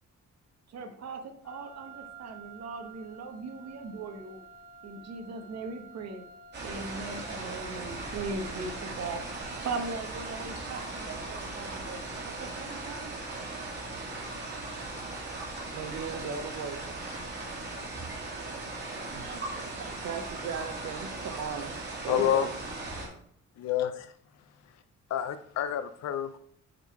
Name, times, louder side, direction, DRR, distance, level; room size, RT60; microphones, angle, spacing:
voice 1, 0.7-4.4 4.8-6.2 6.6-13.2 19.2-20.0, right 3 dB, 65° right, 1.1 m, -39 dB
Wind instrument woodwind instrument, 1.4-10.1, right 3 dB, 90° left, 2.3 m, -51 dB
sound 1, 6.5-23.1, right 2 dB, 35° right, 2.4 m, -38 dB
voice 2, 15.7-16.9 19.1-19.3 20.0-21.8 22.0-22.5, right 6 dB, 80° right, 0.7 m, -36 dB
voice 3, 22.1-22.5 23.6-24.1 25.1-26.4, left 10 dB, 65° left, 0.5 m, -28 dB
8.9 x 3.7 x 4.7 m
wide cardioid pair, 165°, 29 cm